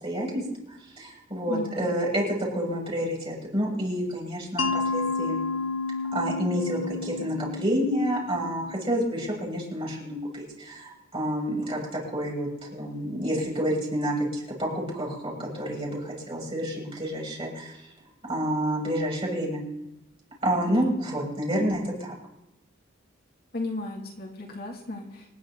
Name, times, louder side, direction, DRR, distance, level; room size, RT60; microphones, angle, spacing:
voice 1, 0.0-0.4 1.0-2.2 2.5-5.4 6.1-17.8 18.2-19.6 20.4-22.1, equal, 30° right, -3 dB, 7.7 m, -29 dB
voice 2, 1.5-1.9 20.7-20.9 23.5-25.2, left 2 dB, 50° left, -2 dB, 2.8 m, -34 dB
Mallet percussion, 4.6-9.4, left 3 dB, 90° left, 1.2 m, -31 dB
26.5 x 11.0 x 4.1 m, 0.89 s
head